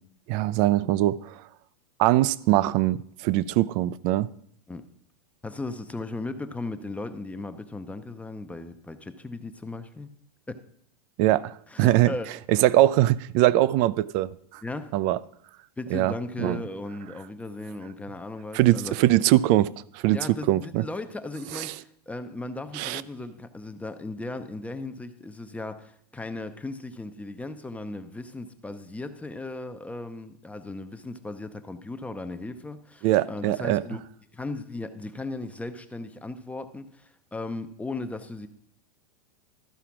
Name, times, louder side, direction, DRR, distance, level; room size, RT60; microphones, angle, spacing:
voice 1, 0.3-1.3 2.0-3.0 3.2-4.3 11.2-12.1 12.6-14.3 14.9-15.2 15.9-16.1 16.4-16.6 18.5-19.7 19.9-20.2 20.5-20.8 21.5-21.7 22.7-23.0 33.0-33.8, right 15 dB, 45° right, 0.4 m, -22 dB
voice 2, 5.4-10.1 10.5-10.6 11.7-12.4 14.6-14.9 15.8-19.0 20.1-34.0 34.3-38.5, left 2 dB, 5° left, 0.6 m, -36 dB
13.0 x 4.9 x 5.9 m
hypercardioid pair, 120°, 20 cm